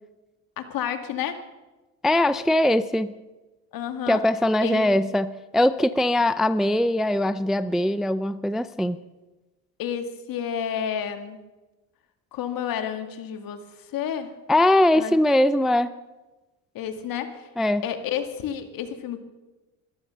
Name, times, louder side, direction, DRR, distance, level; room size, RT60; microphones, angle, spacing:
voice 1, 0.6-1.4 3.7-4.2 4.6-4.9 9.8-11.4 12.3-13.7 13.9-14.3 14.9-15.1 16.7-17.5 17.8-19.2, left 8 dB, 65° left, 7 dB, 2.0 m, -30 dB
voice 2, 2.0-3.1 4.1-9.0 14.5-15.9 17.6-17.8, left 1 dB, ahead, 13 dB, 0.4 m, -21 dB
14.0 x 13.0 x 6.9 m, 1.1 s
cardioid pair, 110°, 37 cm